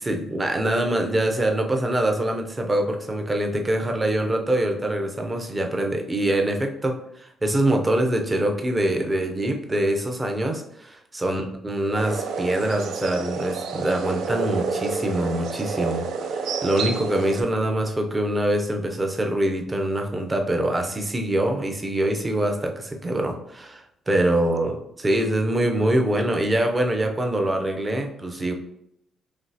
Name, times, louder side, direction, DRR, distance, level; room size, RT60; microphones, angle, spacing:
voice 1, 0.0-28.5, right 1 dB, 20° right, 3 dB, 0.5 m, -24 dB
sound 1, 12.0-17.4, right 5 dB, 75° right, 0.4 m, -29 dB
5.1 x 3.2 x 2.8 m, 0.77 s
cardioid pair, 135°, 0 cm